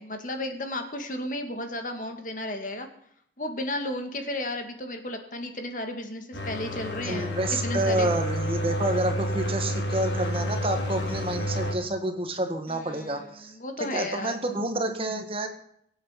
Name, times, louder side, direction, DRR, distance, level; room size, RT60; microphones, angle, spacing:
voice 1, 0.0-2.9 3.4-8.1 12.7-14.4, left 1 dB, 45° left, 6 dB, 2.2 m, -34 dB
sound 1, 6.3-11.7, equal, 85° left, 4.0 m, -29 dB
voice 2, 7.1-13.5 13.9-15.5, right 1 dB, 30° right, 6 dB, 1.8 m, -29 dB
24.0 x 8.7 x 5.9 m, 0.69 s
head